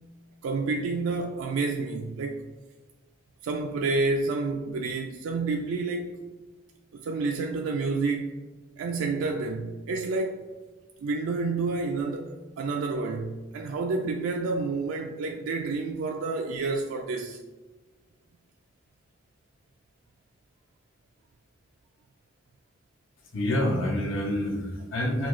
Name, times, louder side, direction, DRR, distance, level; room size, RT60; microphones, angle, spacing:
voice 1, 0.4-2.5 3.4-6.2 6.9-8.3 8.8-10.5 11.0-17.4, right 3 dB, 85° right, 0.3 m, -29 dB
voice 2, 23.3-25.3, left 1 dB, 75° left, 0.9 m, -27 dB
5.8 x 2.3 x 3.0 m
head